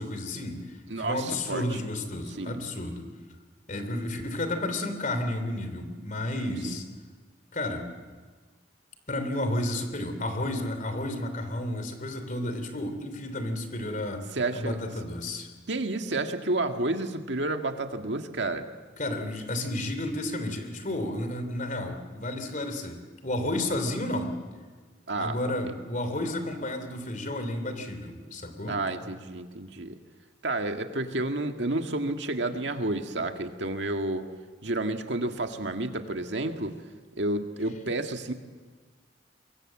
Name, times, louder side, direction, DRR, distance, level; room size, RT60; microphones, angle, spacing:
voice 1, 0.0-3.1 3.7-6.9 7.5-7.9 9.1-14.3 14.5-15.5 19.0-24.3 25.1-28.7, left 1 dB, 45° left, 8 dB, 3.2 m, -32 dB
voice 2, 0.9-1.6 2.4-2.6 6.6-6.8 14.3-14.8 15.7-18.7 25.1-25.4 28.7-30.0 30.4-34.3 34.6-36.8 37.2-38.3, right 2 dB, 75° right, 5 dB, 1.8 m, -30 dB
23.5 x 23.0 x 7.6 m, 1.4 s
head